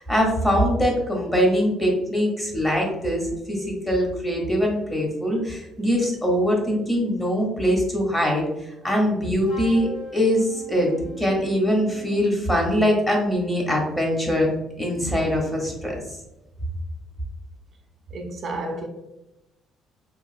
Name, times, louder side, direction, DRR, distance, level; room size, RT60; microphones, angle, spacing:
voice 1, 0.0-10.9 11.2-14.5 14.8-16.0, equal, 15° left, 0.8 m, -22 dB
Wind instrument woodwind instrument, 9.4-12.3, equal, 85° left, 1.1 m, -42 dB
voice 2, 18.1-18.9, right 2 dB, 50° right, 0.4 m, -31 dB
3.0 x 2.4 x 2.4 m
cardioid pair, 105°, 0 cm